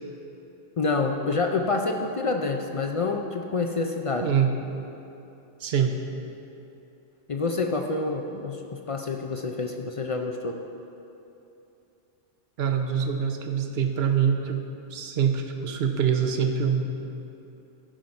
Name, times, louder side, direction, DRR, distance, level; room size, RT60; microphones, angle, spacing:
voice 1, 0.8-4.3 7.3-8.6 8.9-10.6, left 3 dB, 55° left, 3 dB, 0.3 m, -27 dB
voice 2, 4.2-4.5 5.6-5.9 12.6-14.6 14.9-16.9, right 7 dB, 60° right, 5 dB, 1.0 m, -24 dB
14.0 x 5.7 x 5.2 m, 2.9 s
omnidirectional pair, 1.2 m